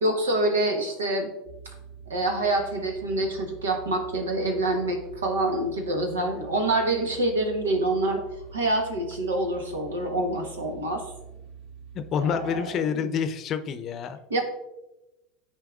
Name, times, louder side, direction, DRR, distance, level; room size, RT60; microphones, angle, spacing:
voice 1, 0.0-1.3 2.1-8.2 8.5-11.0 12.2-13.0 14.3-14.4, right 1 dB, 85° right, 3 dB, 1.2 m, -26 dB
sound 1, 1.4-12.5, right 6 dB, 70° right, 2.0 m, -45 dB
voice 2, 11.9-14.2, left 7 dB, 45° left, 9 dB, 0.6 m, -28 dB
12.5 x 4.5 x 2.4 m, 0.98 s
hypercardioid pair, 80°, 0 cm